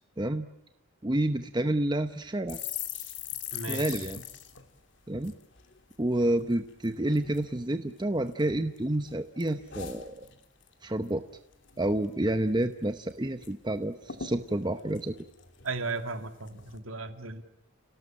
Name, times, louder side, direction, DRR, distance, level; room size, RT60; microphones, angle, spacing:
voice 1, 0.2-0.5 1.0-2.6 3.7-4.2 5.1-5.3 6.0-10.3 10.8-11.2 11.8-15.1, right 1 dB, 20° right, 8 dB, 0.9 m, -29 dB
sound 1, 2.5-6.0 6.3-6.5 6.8-7.4 8.0-8.8 9.1-10.7 11.0-11.3 11.5-12.1 12.5-12.6 12.8-13.5 13.8-13.9 14.1-16.0 16.5-16.8, left 9 dB, 60° left, 2.5 m, -41 dB
voice 2, 3.5-4.1 15.6-17.4, right 3 dB, 90° right, 7 dB, 2.6 m, -36 dB
30.0 x 18.0 x 8.8 m, 0.87 s
head